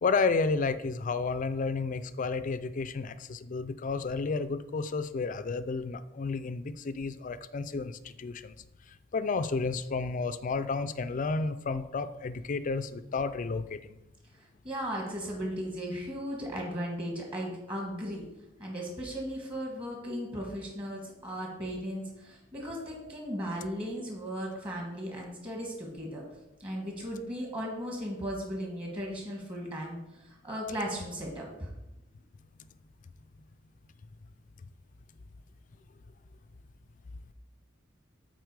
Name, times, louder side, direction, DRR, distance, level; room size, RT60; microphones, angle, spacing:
voice 1, 0.0-8.5 9.1-14.0, left 4 dB, 40° left, 13 dB, 0.4 m, -31 dB
voice 2, 14.6-18.3 18.6-26.2 26.6-30.0 30.2-31.7, equal, 30° right, -1 dB, 1.4 m, -36 dB
8.0 x 4.4 x 4.7 m, 0.96 s
head